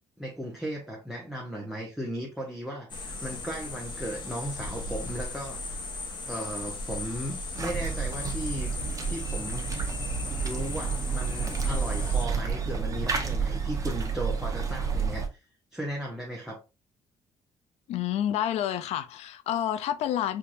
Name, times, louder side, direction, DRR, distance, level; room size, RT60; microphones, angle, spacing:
voice 1, 0.2-5.8 6.2-8.7 9.1-9.7 10.4-15.4 15.7-16.6, right 1 dB, ahead, 0.9 m, -36 dB
sound 1, 2.9-12.3, left 2 dB, 45° left, 1.0 m, -37 dB
sound 2, 7.5-15.3, right 5 dB, 30° right, 0.9 m, -30 dB
voice 2, 17.9-20.4, left 11 dB, 75° left, 0.4 m, -29 dB
4.6 x 2.6 x 2.5 m
cardioid pair, 105°, 11 cm